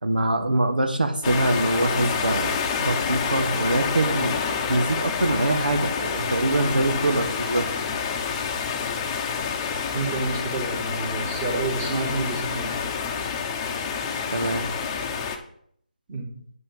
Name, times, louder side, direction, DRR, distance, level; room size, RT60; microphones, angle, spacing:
voice 1, 0.0-7.7 14.3-14.7, right 2 dB, 85° right, 6 dB, 1.4 m, -24 dB
sound 1, 1.2-15.4, left 6 dB, 15° left, 0.9 m, -28 dB
voice 2, 9.9-12.8 16.1-16.3, right 3 dB, 25° right, -2 dB, 2.9 m, -29 dB
8.7 x 5.6 x 7.4 m, 0.64 s
figure-of-eight pair, 160°, 5 cm